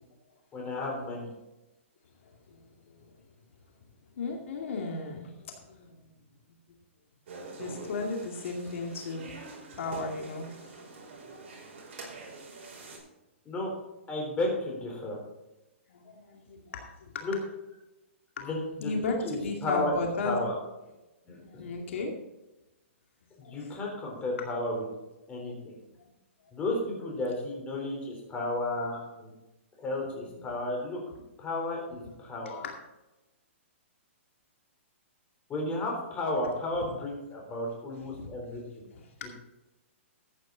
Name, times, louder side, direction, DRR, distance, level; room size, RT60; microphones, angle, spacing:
voice 1, 0.5-1.3 13.5-13.7 14.1-15.2 17.2-17.3 18.4-19.9 20.2-20.6 21.3-21.7 23.4-24.8 25.3-25.8 26.5-29.3 29.8-31.0 31.4-32.6 35.5-38.6, left 2 dB, 15° left, -1 dB, 3.9 m, -33 dB
voice 2, 2.2-3.2 4.1-6.1 7.6-9.3 9.7-10.8 15.9-17.3 18.4-18.5 18.8-20.4 21.3-22.1 23.4-23.7 25.7-26.1 30.0-30.4 32.0-32.1 32.5-32.7 36.9-37.0 38.0-38.6 38.9-39.3, left 3 dB, 70° left, 2 dB, 2.3 m, -36 dB
sound 1, 7.3-13.0, right 3 dB, 50° right, 4.7 m, -45 dB
14.0 x 8.9 x 4.0 m, 1.0 s
hypercardioid pair, 145°, 7 cm